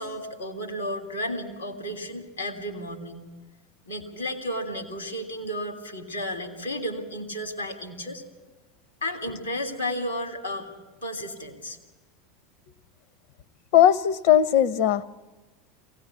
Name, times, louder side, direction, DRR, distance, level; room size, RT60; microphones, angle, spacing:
voice 1, 0.0-3.3 3.9-8.2 9.0-10.7 11.0-11.8, equal, 90° left, 4 dB, 3.0 m, -33 dB
voice 2, 13.7-15.0, left 11 dB, 55° left, 14 dB, 0.7 m, -18 dB
23.0 x 17.0 x 8.4 m, 1.2 s
figure-of-eight pair, 80°, 0 cm